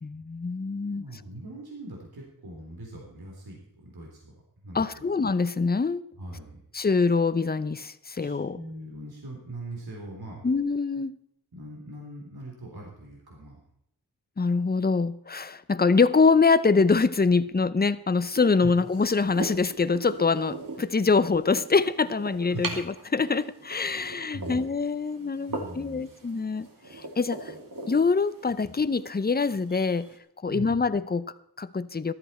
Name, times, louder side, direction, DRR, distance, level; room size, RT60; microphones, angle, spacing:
voice 1, 0.0-1.0 4.7-6.0 6.7-8.6 10.4-11.1 14.4-26.7 26.9-27.5 27.9-30.1 30.4-32.1, left 4 dB, 25° left, 15 dB, 0.7 m, -24 dB
voice 2, 1.0-4.3 4.6-5.0 6.2-6.6 8.2-10.4 11.5-13.6 18.6-18.7 22.5-22.8 23.9-24.0 24.3-24.6 25.5-26.1 30.5-30.8, right 1 dB, 75° right, -1 dB, 3.6 m, -41 dB
sound 1, 18.3-30.2, right 2 dB, 60° right, 2.3 m, -41 dB
14.0 x 12.5 x 4.3 m, 0.76 s
wide cardioid pair, 70°, 37 cm